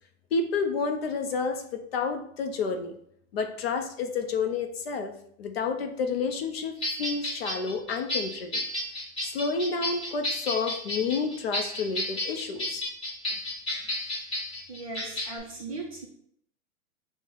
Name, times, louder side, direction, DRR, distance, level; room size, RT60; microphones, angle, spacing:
voice 1, 0.3-3.0 3.3-5.1 5.4-8.6 9.2-12.9, left 4 dB, 45° left, 6 dB, 0.5 m, -30 dB
sound 1, 6.8-15.4, left 1 dB, 10° left, 1.2 m, -32 dB
voice 2, 14.7-16.1, right 3 dB, 25° right, -2 dB, 0.4 m, -38 dB
6.0 x 2.1 x 3.7 m, 0.68 s
supercardioid pair, 160°, 43 cm